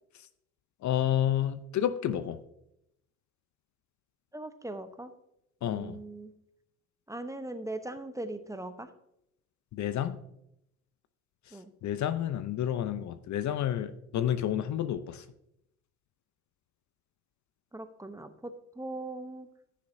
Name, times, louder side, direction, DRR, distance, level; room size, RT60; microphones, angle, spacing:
voice 1, 0.8-2.4 5.6-6.0 9.7-10.2 11.5-15.3, left 10 dB, 45° left, 13 dB, 0.7 m, -30 dB
voice 2, 4.3-5.1 5.7-6.3 7.1-8.9 11.5-11.7 17.7-19.5, right 2 dB, 10° right, 9 dB, 0.9 m, -40 dB
15.0 x 6.7 x 2.7 m, 0.80 s
hypercardioid pair, 65°, 41 cm